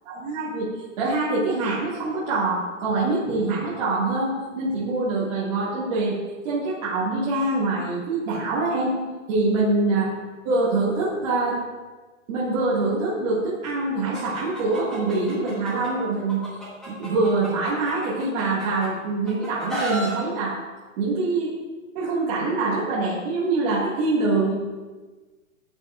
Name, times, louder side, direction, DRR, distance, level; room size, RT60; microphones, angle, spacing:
voice 1, 0.1-0.7 1.0-6.2 6.4-9.0 9.3-10.1 10.4-11.6 12.3-16.4 16.9-20.6 21.0-21.5 21.9-24.5, right 3 dB, 30° right, -9 dB, 1.9 m, -24 dB
Chicken rooster, 14.1-15.9 16.3-18.9 19.2-20.1, right 1 dB, ahead, 1.2 m, -33 dB
13.0 x 7.7 x 2.4 m, 1.3 s
hypercardioid pair, 165°, 41 cm